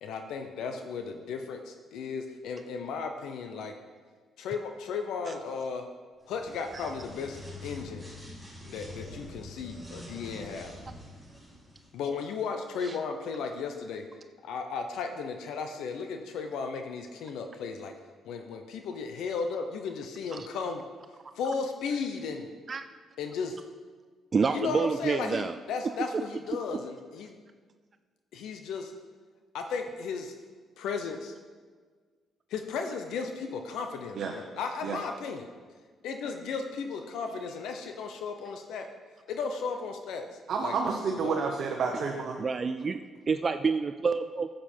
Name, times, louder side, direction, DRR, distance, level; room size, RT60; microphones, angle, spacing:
voice 1, 0.0-3.7 4.4-5.9 6.3-8.1 8.7-10.8 11.9-14.0 14.4-17.9 18.2-20.8 21.3-22.5 23.2-23.6 24.5-27.3 28.3-28.9 29.5-30.3 30.8-31.3 32.5-35.5 36.0-38.9 39.3-40.3 40.6-41.0 41.2-41.3, left 5 dB, 85° left, 5 dB, 0.8 m, -35 dB
sound 1, 6.2-11.9, left 1 dB, ahead, 3.4 m, -45 dB
voice 2, 24.3-25.6 26.1-26.2 42.4-44.5, right 5 dB, 35° right, 10 dB, 0.4 m, -28 dB
voice 3, 40.5-42.4, right 5 dB, 60° right, 1 dB, 0.9 m, -30 dB
10.5 x 7.7 x 4.5 m, 1.5 s
cardioid pair, 90°, 0 cm